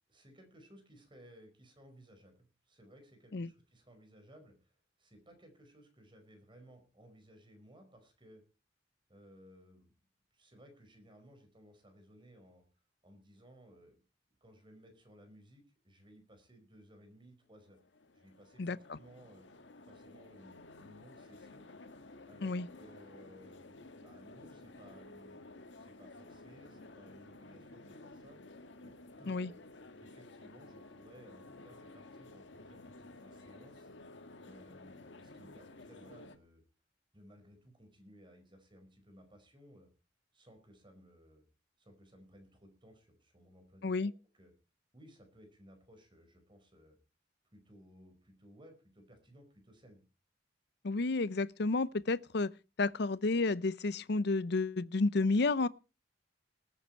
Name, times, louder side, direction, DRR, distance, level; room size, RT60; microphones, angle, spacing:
voice 1, 0.1-8.4 9.1-9.9 10.3-12.6 13.0-14.0 14.4-17.8 18.1-19.5 19.8-21.7 22.3-28.4 28.8-28.9 29.2-29.5 30.0-33.9 34.4-36.6 37.1-39.9 40.3-41.4 41.8-44.5 44.9-47.0 47.5-50.0, equal, 25° right, 4.9 m, -59 dB
sound 1, 17.6-36.4, left 2 dB, 85° left, 1.4 m, -54 dB
voice 2, 50.8-52.5 52.8-55.7, left 3 dB, 65° left, 0.7 m, -31 dB
19.5 x 9.6 x 4.5 m
head